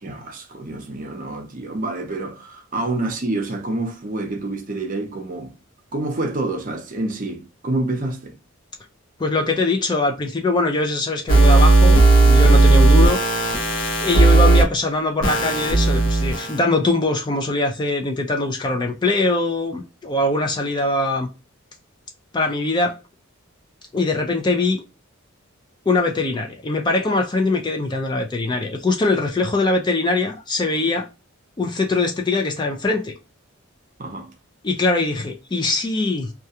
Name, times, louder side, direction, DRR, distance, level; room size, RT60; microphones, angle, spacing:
voice 1, 0.0-5.5 5.9-8.3 34.0-34.3, right 2 dB, 40° right, 0.6 m, -27 dB
voice 2, 9.2-21.3 22.3-23.0 23.9-24.8 25.9-31.1 31.6-33.1 34.6-36.3, left 2 dB, 20° left, 0.3 m, -22 dB
sound 1, 11.3-14.6 15.2-16.6, right 2 dB, 60° left, 0.7 m, -14 dB
2.3 x 2.2 x 2.7 m
head